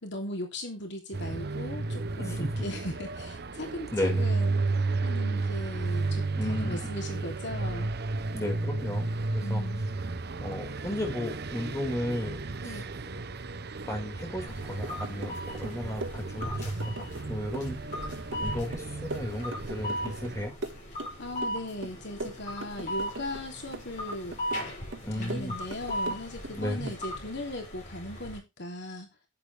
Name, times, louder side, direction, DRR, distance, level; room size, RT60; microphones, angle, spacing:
voice 1, 0.0-4.5 5.0-7.9 9.4-9.8 12.6-12.9 21.2-24.3 25.1-29.1, left 1 dB, 65° left, 3 dB, 3.2 m, -38 dB
sound 1, 1.1-20.5, right 3 dB, 55° right, 0.9 m, -33 dB
voice 2, 2.2-2.5 3.9-4.3 6.4-6.8 8.3-9.6 10.4-12.7 13.9-17.8 18.4-20.6 25.0-25.6 26.5-27.0, left 1 dB, 15° left, 2 dB, 5.2 m, -34 dB
sound 2, 14.5-28.4, equal, 40° left, 7.8 m, -38 dB
sound 3, 14.8-15.4 15.6-17.3 17.5-20.3 20.6-21.6 21.8-23.4 23.7-24.7 24.9-26.5 26.9-27.0, right 2 dB, 85° right, 1.6 m, -40 dB
11.0 x 9.9 x 3.4 m, 0.24 s
head